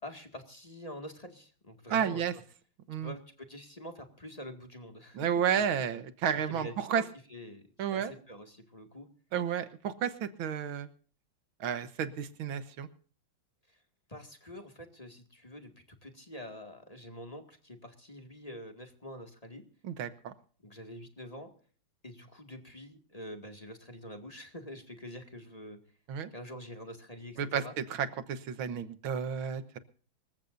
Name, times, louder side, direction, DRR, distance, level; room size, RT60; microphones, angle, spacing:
voice 1, 0.0-2.2 2.9-5.6 6.5-7.0 7.3-7.6 7.9-9.1 13.7-13.8 14.1-19.6 20.6-21.5 22.0-25.8 26.3-27.7, equal, 20° left, 4 dB, 2.1 m, -46 dB
voice 2, 1.9-2.3 2.9-3.1 5.1-7.0 7.8-8.1 9.3-10.9 11.6-12.9 19.8-20.3 26.1-26.3 27.4-29.8, right 8 dB, 85° right, 12 dB, 2.0 m, -32 dB
26.0 x 15.0 x 2.6 m, 0.43 s
omnidirectional pair, 2.2 m